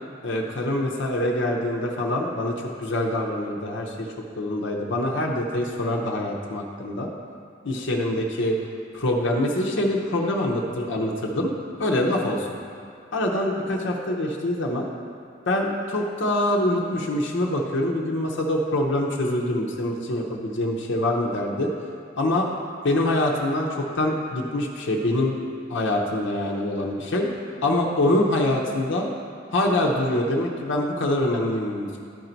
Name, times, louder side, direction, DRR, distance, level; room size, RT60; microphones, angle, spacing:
voice 1, 0.2-7.1 7.6-8.5 8.9-11.5 11.8-12.5 13.1-14.9 15.5-21.7 22.2-22.5 22.8-25.4 25.7-27.3 27.6-29.1 29.5-32.0, left 1 dB, 65° left, -1 dB, 0.7 m, -25 dB
11.5 x 4.0 x 4.4 m, 2.4 s
head